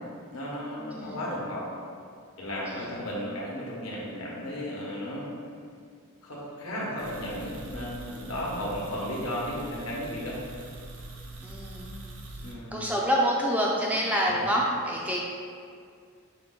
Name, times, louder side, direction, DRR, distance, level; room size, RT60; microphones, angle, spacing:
voice 1, 0.3-1.7 2.4-5.3 6.2-10.4 12.4-12.8, equal, 65° left, -4 dB, 1.0 m, -34 dB
voice 2, 2.7-3.0 11.4-11.9 12.7-15.2, equal, 5° right, -3 dB, 0.3 m, -27 dB
sound 1, 7.0-12.5, right 2 dB, 70° right, 0.6 m, -43 dB
5.9 x 2.2 x 3.7 m, 2.2 s
head